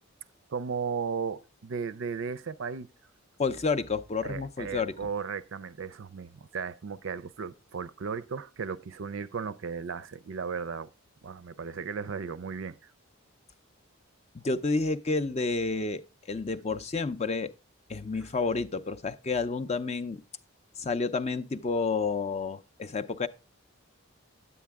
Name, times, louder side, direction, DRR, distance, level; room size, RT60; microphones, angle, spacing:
voice 1, 0.5-2.9 4.2-10.9 11.2-12.9, right 5 dB, 60° right, 0.4 m, -35 dB
voice 2, 3.4-4.9 14.3-16.0 16.3-17.5 17.9-20.2 20.8-23.3, left 4 dB, 30° left, 0.4 m, -30 dB
9.5 x 8.5 x 3.5 m
head